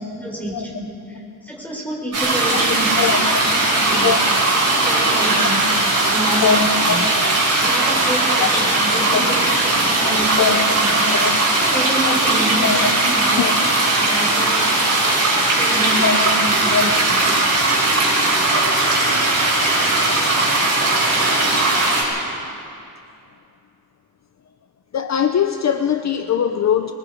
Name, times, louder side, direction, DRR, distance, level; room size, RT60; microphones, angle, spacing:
voice 1, 0.1-3.1 3.4-4.1 4.9-5.6 6.1-7.1 7.6-9.4 9.6-11.2 11.7-13.5 14.0-14.6 15.5-17.2, right 1 dB, 5° left, -3 dB, 4.7 m, -28 dB
sound 1, 2.1-22.0, right 2 dB, 45° right, 7.0 m, -18 dB
voice 2, 16.0-16.3 16.7-16.8 24.9-26.9, left 7 dB, 45° left, 7 dB, 0.7 m, -20 dB
23.5 x 22.5 x 5.1 m, 2.6 s
wide cardioid pair, 150°, 37 cm